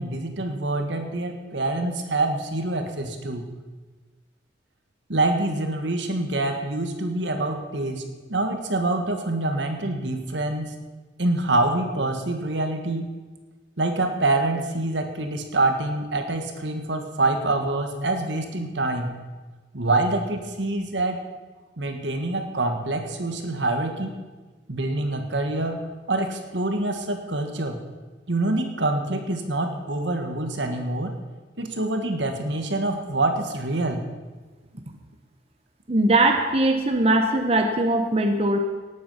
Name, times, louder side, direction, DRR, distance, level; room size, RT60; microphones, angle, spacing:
voice 1, 0.0-3.4 5.1-8.0 8.3-10.7 11.2-13.1 13.8-19.1 19.7-21.2 21.8-24.1 24.7-25.8 26.1-27.8 28.3-31.1 31.6-34.0, right 2 dB, 75° right, 5 dB, 1.8 m, -26 dB
voice 2, 35.9-38.6, right 2 dB, 35° right, 4 dB, 1.0 m, -20 dB
18.5 x 8.6 x 5.7 m, 1.3 s
head